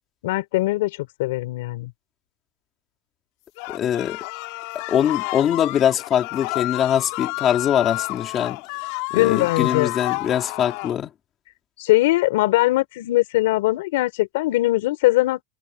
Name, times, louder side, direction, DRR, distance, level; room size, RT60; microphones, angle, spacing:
voice 1, 0.2-1.9 9.1-9.9 11.8-15.4, left 18 dB, 70° left, 4.0 m, -21 dB
sound 1, 3.6-11.0, left 25 dB, 55° left, 2.9 m, -30 dB
voice 2, 3.7-4.2 4.9-8.6 9.1-11.1, left 9 dB, 25° left, 3.4 m, -22 dB
supercardioid pair, 165°, 0 cm